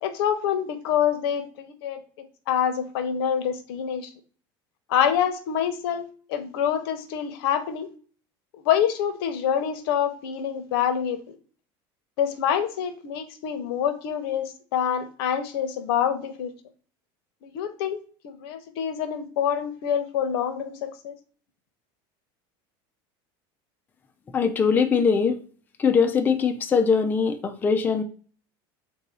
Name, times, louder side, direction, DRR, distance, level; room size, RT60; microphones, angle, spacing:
voice 1, 0.0-4.1 4.9-7.9 8.6-11.4 12.2-16.5 17.4-21.2, left 9 dB, 80° left, 9 dB, 0.8 m, -26 dB
voice 2, 24.3-25.4 25.8-28.0, left 5 dB, 15° left, 5 dB, 0.4 m, -21 dB
3.8 x 2.7 x 4.6 m, 0.41 s
cardioid pair, 150°, 13 cm